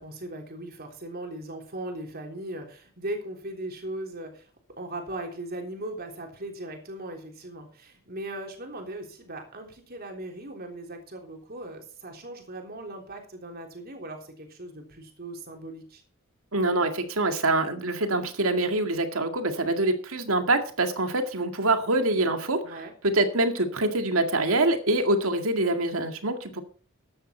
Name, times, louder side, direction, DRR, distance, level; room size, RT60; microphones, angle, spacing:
voice 1, 0.0-4.5 4.8-16.0 22.6-22.9, right 1 dB, 45° right, 3 dB, 3.5 m, -38 dB
voice 2, 16.5-22.6 23.0-26.6, right 2 dB, 85° right, 6 dB, 2.1 m, -25 dB
13.5 x 10.0 x 4.5 m, 0.41 s
head